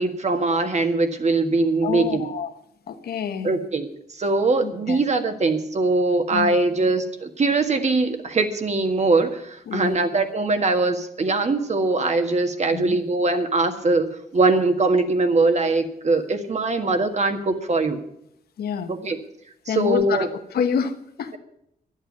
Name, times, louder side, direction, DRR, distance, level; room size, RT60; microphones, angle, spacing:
voice 1, 0.0-2.3 3.4-14.1 14.3-18.0 18.9-19.2 19.7-20.3, right 3 dB, 45° right, 6 dB, 1.7 m, -22 dB
voice 2, 1.8-2.5 2.9-3.5 4.6-5.0 6.3-6.5 9.7-10.0 12.7-13.0 18.6-18.9 19.7-21.4, left 7 dB, 85° left, 7 dB, 1.2 m, -27 dB
11.5 x 8.2 x 9.3 m, 0.76 s
cardioid pair, 70°, 16 cm